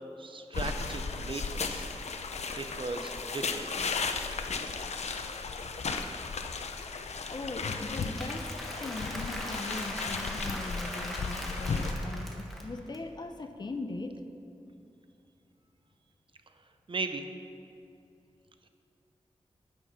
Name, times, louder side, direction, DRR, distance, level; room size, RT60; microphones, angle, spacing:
voice 1, 0.2-1.9 2.5-3.7 16.9-17.2, right 3 dB, 50° right, 7 dB, 0.8 m, -37 dB
sound 1, 0.5-11.9, left 4 dB, 75° left, 0.7 m, -35 dB
voice 2, 7.3-8.5 8.8-14.2, left 2 dB, 40° left, 6 dB, 0.7 m, -39 dB
Applause / Crowd, 7.6-13.0, equal, ahead, 1.4 m, -41 dB
10.5 x 9.0 x 5.7 m, 2.7 s
wide cardioid pair, 125°, 11 cm